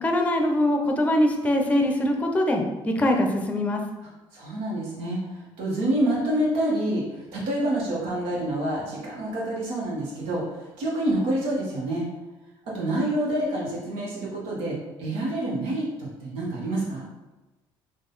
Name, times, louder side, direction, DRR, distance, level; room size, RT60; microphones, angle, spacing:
voice 1, 0.0-3.8, left 1 dB, 15° left, 3 dB, 0.6 m, -23 dB
voice 2, 4.0-12.1 12.6-17.0, right 1 dB, 85° right, -4 dB, 1.4 m, -27 dB
4.0 x 2.7 x 3.9 m, 1.1 s
cardioid pair, 120°, 10 cm